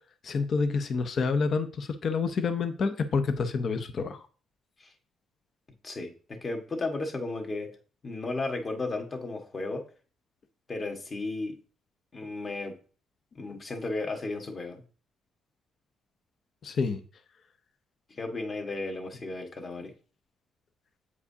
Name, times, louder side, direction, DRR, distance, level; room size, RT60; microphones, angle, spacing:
voice 1, 0.2-4.2 16.6-17.0, left 4 dB, 55° left, 9 dB, 0.7 m, -28 dB
voice 2, 5.8-7.7 8.0-9.8 10.7-11.5 12.1-12.8 13.3-14.8 18.1-19.9, left 2 dB, 35° left, 2 dB, 1.5 m, -34 dB
8.2 x 4.8 x 2.8 m, 0.39 s
cardioid pair, 90°, 0 cm